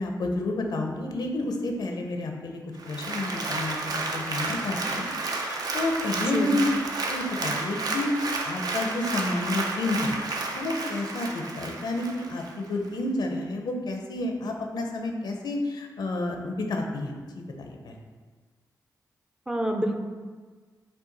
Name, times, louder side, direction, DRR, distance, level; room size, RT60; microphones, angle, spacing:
voice 1, 0.0-2.6 2.8-5.1 5.3-6.6 7.1-8.1 8.4-10.1 10.5-18.0, left 2 dB, 75° left, 3 dB, 0.6 m, -30 dB
Applause, 2.8-12.5 13.0-13.1, right 3 dB, 60° right, 0.5 m, -31 dB
voice 2, 6.2-6.6 19.5-19.9, right 1 dB, 10° right, 3 dB, 0.5 m, -27 dB
5.5 x 2.3 x 3.9 m, 1.4 s
cardioid pair, 80°, 7 cm